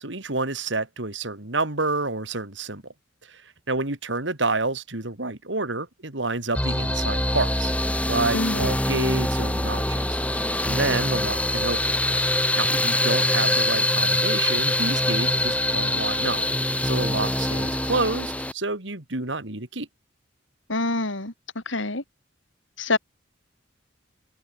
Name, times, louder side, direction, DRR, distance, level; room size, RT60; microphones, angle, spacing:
voice 1, 0.0-2.8 3.3-3.4 3.7-11.8 12.6-16.4 16.8-19.9, right 3 dB, 65° right, 2.9 m, -29 dB
sound 1, 6.5-18.5, left 1 dB, 5° left, 4.6 m, -24 dB
voice 2, 8.3-8.7 20.7-22.0 22.8-23.0, left 2 dB, 75° left, 3.8 m, -26 dB
open air
head